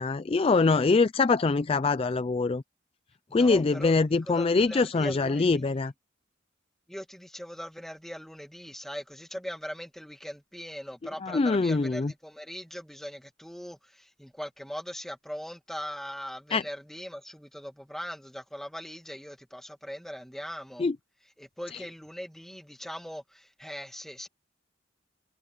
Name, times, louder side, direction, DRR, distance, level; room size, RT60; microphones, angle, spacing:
voice 1, 0.0-2.6 3.3-5.9 11.2-12.1 16.5-16.6 20.8-21.0, left 3 dB, 30° left, 0.4 m, -24 dB
voice 2, 3.3-3.9 4.2-5.8 6.9-20.9 21.4-24.3, equal, ahead, 2.3 m, -40 dB
head